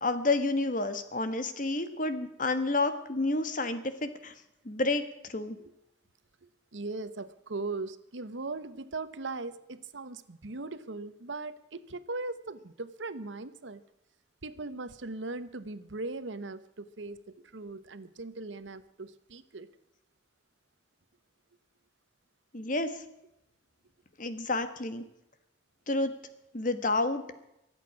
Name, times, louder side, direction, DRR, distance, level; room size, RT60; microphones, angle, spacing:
voice 1, 0.0-4.3 4.6-5.0 5.3-5.6 22.5-23.0 24.2-25.0 25.9-26.1 26.5-27.2, left 2 dB, 45° left, 10 dB, 1.4 m, -29 dB
voice 2, 6.4-13.8 14.4-19.7, right 3 dB, 90° right, 13 dB, 1.0 m, -39 dB
23.5 x 8.3 x 6.0 m, 0.86 s
head